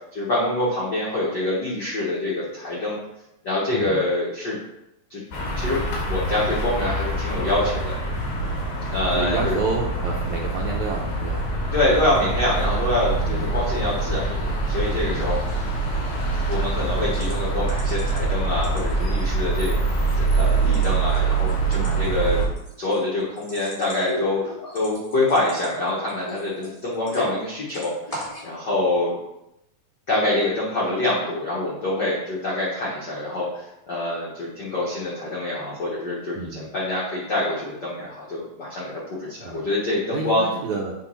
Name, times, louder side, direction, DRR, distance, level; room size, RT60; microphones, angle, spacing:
voice 1, 0.1-3.0 3.4-4.6 5.1-5.2 5.6-5.8 6.1-8.0 8.9-9.6 11.7-15.6 16.5-22.4 22.8-29.2 30.1-40.4, left 1 dB, 85° left, -6 dB, 0.9 m, -25 dB
voice 2, 3.7-4.0 9.1-11.4 13.2-13.5 15.1-15.3 21.7-22.2 36.3-36.7 39.4-39.7 40.1-40.9, right 4 dB, 80° right, -2 dB, 1.7 m, -29 dB
sound 1, 5.3-22.5, right 3 dB, 70° left, 3.1 m, -24 dB
sound 2, 15.5-15.6 15.9-16.2 16.5-16.6 17.1-18.2 18.5-19.3 19.7-20.2 20.5-27.4 27.7-28.5, left 1 dB, 5° left, 1.8 m, -38 dB
7.4 x 3.5 x 5.6 m, 0.88 s
omnidirectional pair, 4.2 m